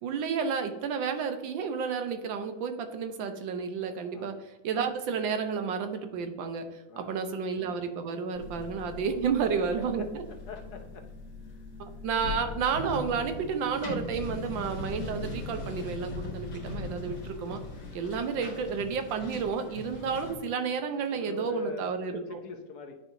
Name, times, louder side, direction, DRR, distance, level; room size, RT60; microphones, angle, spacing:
voice 1, 0.0-6.7 7.0-10.2 11.8-17.6 17.9-22.4, right 6 dB, 85° right, 7 dB, 1.5 m, -31 dB
sound 1, 8.4-20.4, left 3 dB, 85° left, 2.2 m, -40 dB
voice 2, 10.0-11.0 11.5-11.6 21.1-23.0, left 4 dB, 65° left, 5 dB, 1.2 m, -41 dB
10.0 x 4.5 x 2.7 m, 1.0 s
omnidirectional pair, 2.0 m